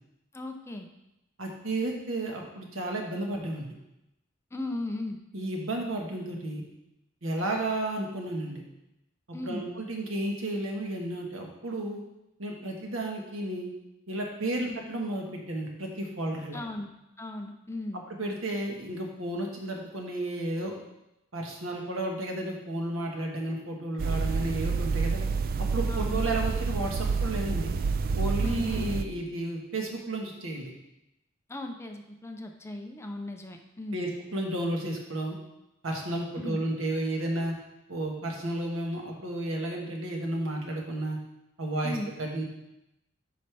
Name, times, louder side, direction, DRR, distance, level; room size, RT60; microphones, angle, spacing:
voice 1, 0.3-0.9 4.5-5.2 9.3-9.7 14.6-14.8 16.5-16.9 17.2-18.0 25.9-26.2 28.4-28.9 31.5-34.1 36.4-36.6 41.8-42.1, left 1 dB, 15° left, 4 dB, 0.6 m, -37 dB
voice 2, 1.4-3.7 5.3-6.6 7.2-8.6 9.3-12.0 12.4-13.7 14.1-16.6 18.2-20.7 21.3-25.2 25.6-27.7 28.1-30.7 33.9-35.4 35.8-37.5 37.9-41.2 41.6-42.4, right 1 dB, 85° right, 1 dB, 1.5 m, -32 dB
sound 1, 24.0-29.0, right 4 dB, 45° right, 0.3 m, -28 dB
9.4 x 5.5 x 3.4 m, 0.89 s
head